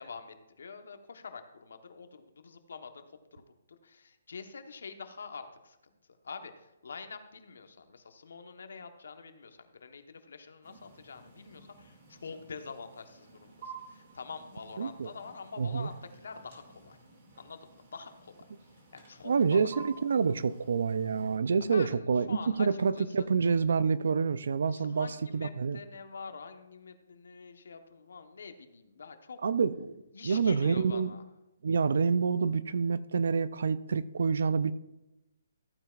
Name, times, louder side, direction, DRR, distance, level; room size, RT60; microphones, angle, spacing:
voice 1, 0.0-3.0 3.3-5.8 6.2-17.0 17.4-18.4 18.9-19.7 21.7-23.3 24.7-29.4 30.1-31.2, left 5 dB, 75° left, 7 dB, 1.1 m, -46 dB
sound 1, 10.6-21.4, right 4 dB, 35° right, 2.3 m, -53 dB
voice 2, 14.8-15.1 15.6-15.9 19.2-25.8 29.4-29.9 30.2-31.1 31.6-34.7, right 5 dB, 70° right, 16 dB, 0.5 m, -27 dB
14.0 x 9.0 x 2.5 m, 0.94 s
hypercardioid pair, 165°, 0 cm